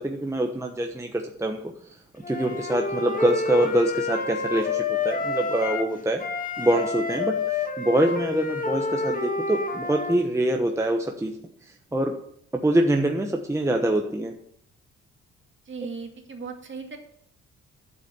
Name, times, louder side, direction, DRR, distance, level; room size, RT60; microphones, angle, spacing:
voice 1, 0.0-1.7 2.3-6.2 6.6-7.4 7.8-11.4 11.9-12.1 12.6-14.3, right 1 dB, 10° right, 2 dB, 1.0 m, -24 dB
Wind instrument woodwind instrument, 2.2-5.9 6.2-10.2, left 3 dB, 25° left, 1.7 m, -28 dB
voice 2, 15.7-17.0, right 4 dB, 40° right, 2 dB, 2.4 m, -37 dB
8.5 x 7.7 x 6.9 m, 0.69 s
cardioid pair, 90°, 30 cm